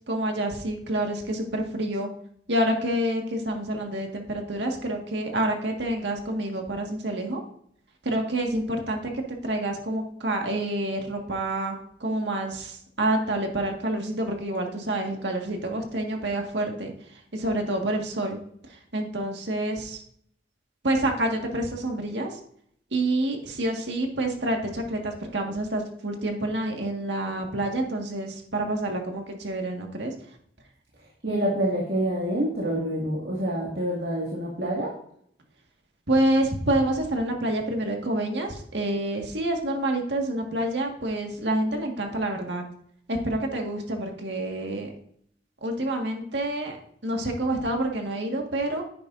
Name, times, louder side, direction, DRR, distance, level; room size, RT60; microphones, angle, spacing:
voice 1, 0.0-2.1 2.5-7.4 8.1-16.9 17.3-18.4 18.7-20.0 20.8-22.4 22.9-30.1 36.1-42.6 43.1-44.9 45.6-46.8 47.0-48.8, right 1 dB, 85° right, 2 dB, 1.8 m, -28 dB
voice 2, 31.2-34.9, right 1 dB, 65° right, -4 dB, 2.2 m, -27 dB
10.0 x 9.5 x 2.6 m, 0.65 s
head